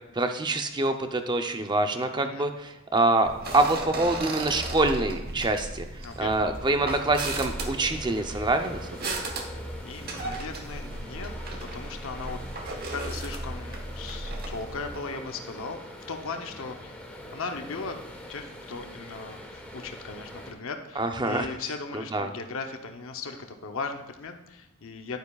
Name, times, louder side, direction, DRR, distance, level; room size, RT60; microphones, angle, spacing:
voice 1, 0.1-5.9 6.2-8.9 21.0-21.5 21.9-22.3, right 2 dB, 20° right, 6 dB, 0.6 m, -25 dB
sound 1, 3.2-15.0, right 2 dB, 45° right, 1.0 m, -36 dB
sound 2, 5.2-20.5, left 1 dB, 5° left, 1.2 m, -45 dB
voice 2, 6.0-6.3 9.8-11.3 11.7-17.0 17.3-25.2, left 4 dB, 60° left, 5 dB, 0.7 m, -38 dB
11.0 x 9.6 x 2.4 m, 0.94 s
head